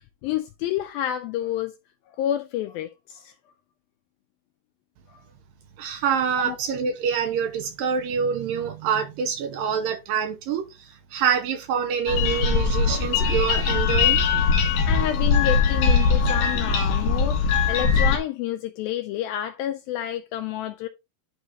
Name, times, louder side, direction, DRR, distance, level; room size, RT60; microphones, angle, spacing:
voice 1, 0.2-1.7 2.2-3.3 6.4-6.6 14.9-17.4 17.7-20.9, left 12 dB, 85° left, 2.1 m, -29 dB
voice 2, 5.8-14.2, right 7 dB, 75° right, 2.2 m, -26 dB
sound 1, 12.1-18.2, left 5 dB, 55° left, 3.1 m, -21 dB
11.5 x 4.7 x 2.9 m
omnidirectional pair, 4.7 m